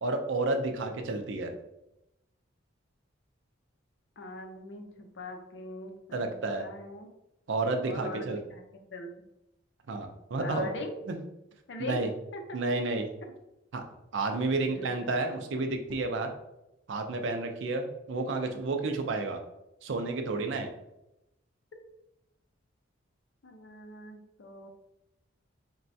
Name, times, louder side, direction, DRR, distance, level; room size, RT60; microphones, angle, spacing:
voice 1, 0.0-1.5 6.1-6.6 7.5-8.4 9.9-10.7 11.1-11.2 11.9-12.1 12.5-13.1 13.7-13.9 14.1-16.3 16.9-19.4 19.8-20.7, right 3 dB, 70° right, 5 dB, 0.5 m, -31 dB
voice 2, 4.2-7.1 7.9-9.1 10.4-11.0 11.7-12.6 13.2-13.3 14.7-15.1 23.4-24.7, left 2 dB, 65° left, 4 dB, 0.5 m, -41 dB
4.1 x 2.2 x 2.6 m, 0.89 s
head